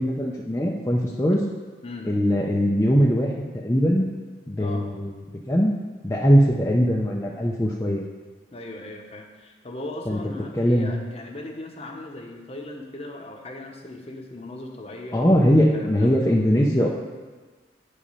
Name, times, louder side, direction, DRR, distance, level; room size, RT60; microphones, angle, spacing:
voice 1, 0.0-1.4 2.1-4.1 4.5-5.1 5.5-5.7 6.0-8.0 10.1-10.2 10.5-10.9 15.1-16.9, equal, 15° left, -4 dB, 0.6 m, -21 dB
voice 2, 8.5-16.1, left 2 dB, 35° left, 2 dB, 1.0 m, -38 dB
9.9 x 5.1 x 5.5 m, 1.4 s
head